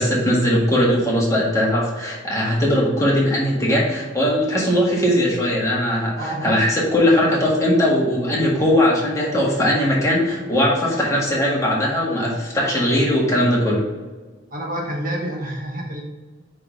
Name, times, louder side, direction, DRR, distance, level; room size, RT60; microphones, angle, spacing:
voice 1, 0.0-13.9, equal, 15° left, -5 dB, 1.7 m, -19 dB
voice 2, 6.2-6.6 14.5-16.0, right 1 dB, 50° right, -1 dB, 1.2 m, -28 dB
5.4 x 4.2 x 5.2 m, 1.3 s
head